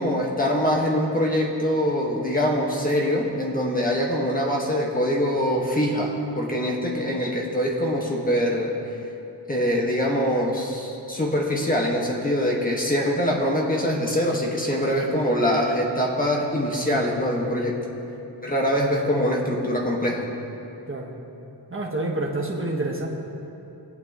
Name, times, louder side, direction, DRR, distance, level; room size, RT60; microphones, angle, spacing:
voice 1, 0.0-8.7 9.5-17.8 18.4-20.2, equal, 20° left, -2 dB, 1.4 m, -23 dB
voice 2, 21.7-23.1, right 2 dB, 30° right, -2 dB, 1.3 m, -28 dB
24.0 x 9.0 x 3.0 m, 3.0 s
wide cardioid pair, 165°, 42 cm